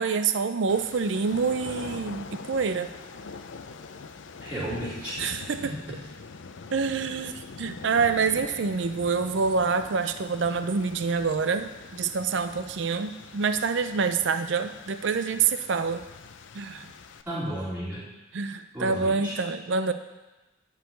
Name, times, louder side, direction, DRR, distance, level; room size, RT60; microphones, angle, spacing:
voice 1, 0.0-2.9 5.2-5.7 6.7-16.0 16.5-16.9 18.3-19.9, right 5 dB, 70° right, 10 dB, 0.5 m, -26 dB
sound 1, 0.7-17.2, left 4 dB, 75° left, 0.6 m, -44 dB
voice 2, 4.4-5.3 5.6-5.8 17.3-18.0 18.7-19.4, right 1 dB, 10° right, -10 dB, 2.8 m, -33 dB
11.5 x 4.9 x 8.3 m, 1.1 s
head